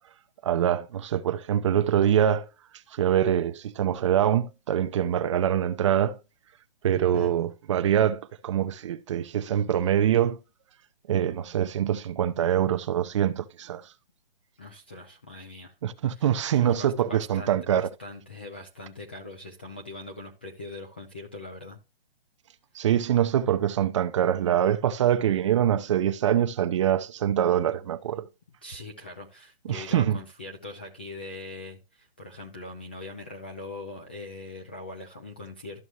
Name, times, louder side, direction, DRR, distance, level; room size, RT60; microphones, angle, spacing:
voice 1, 0.4-2.5 2.9-6.2 6.8-10.4 11.1-13.8 15.8-17.9 22.7-28.3 29.7-30.2, right 10 dB, 30° right, 0.6 m, -24 dB
voice 2, 14.6-15.8 16.1-21.8 28.6-35.8, left 2 dB, 10° left, 0.3 m, -41 dB
12.5 x 6.1 x 3.0 m
hypercardioid pair, 155°, 30 cm